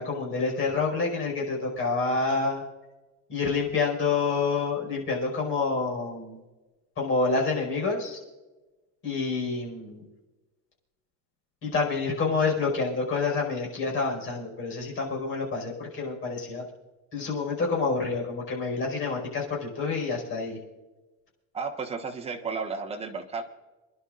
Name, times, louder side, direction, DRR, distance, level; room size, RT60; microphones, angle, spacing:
voice 1, 0.0-2.6 3.3-6.4 7.0-8.2 9.0-10.0 11.6-16.6 17.1-20.6, left 4 dB, 35° left, -1 dB, 5.3 m, -28 dB
voice 2, 21.5-23.4, right 5 dB, 15° right, 1 dB, 1.2 m, -33 dB
29.0 x 11.0 x 2.5 m, 1.2 s
cardioid pair, 170°, 34 cm